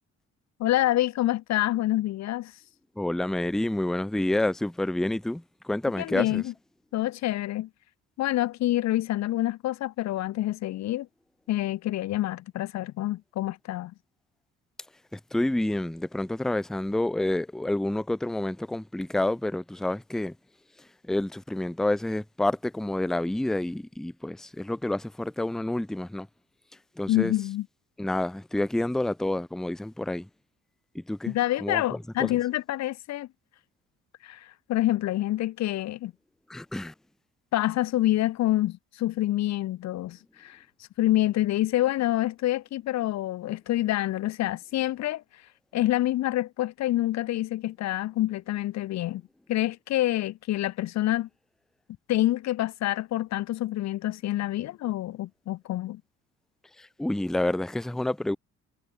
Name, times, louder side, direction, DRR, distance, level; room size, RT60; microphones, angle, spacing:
voice 1, 0.6-2.5 6.0-6.5 6.9-7.7 8.2-11.1 11.5-13.9 27.1-27.7 31.3-33.3 34.2-36.1 37.5-40.6 41.0-45.2 45.7-49.2 49.5-51.3 52.1-56.0, left 15 dB, 65° left, 0.5 m, -27 dB
voice 2, 3.0-6.4 15.1-20.3 21.1-26.3 27.0-27.3 28.0-30.3 30.9-31.3 31.6-31.8 32.2-32.3 36.5-36.9 56.8-58.4, left 1 dB, ahead, 0.5 m, -28 dB
cardioid pair, 90°, 30 cm